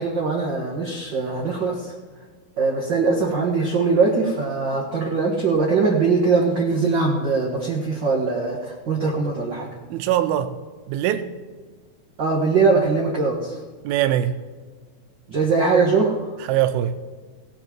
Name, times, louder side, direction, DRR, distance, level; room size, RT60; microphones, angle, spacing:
voice 1, 0.0-1.9 2.6-9.7 12.2-13.5 15.3-16.1, right 4 dB, 60° right, -2 dB, 1.1 m, -21 dB
voice 2, 9.9-10.5 10.9-11.3 13.9-14.4 16.5-17.0, right 11 dB, 85° right, 10 dB, 2.6 m, -22 dB
17.5 x 7.7 x 4.6 m, 1.4 s
omnidirectional pair, 4.4 m